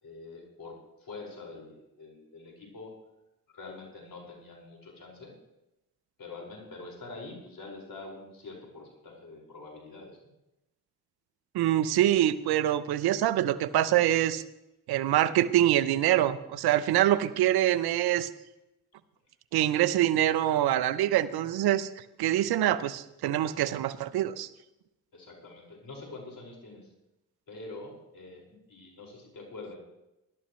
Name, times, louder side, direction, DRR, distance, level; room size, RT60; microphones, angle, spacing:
voice 1, 0.0-2.9 3.5-5.3 6.2-10.2 25.1-26.9 27.5-29.8, left 3 dB, 65° left, 0 dB, 5.4 m, -45 dB
voice 2, 11.5-14.4 14.9-18.3 19.5-21.9 22.2-24.5, right 12 dB, 85° right, 15 dB, 0.8 m, -25 dB
20.0 x 12.5 x 3.2 m, 0.92 s
supercardioid pair, 45°, 37 cm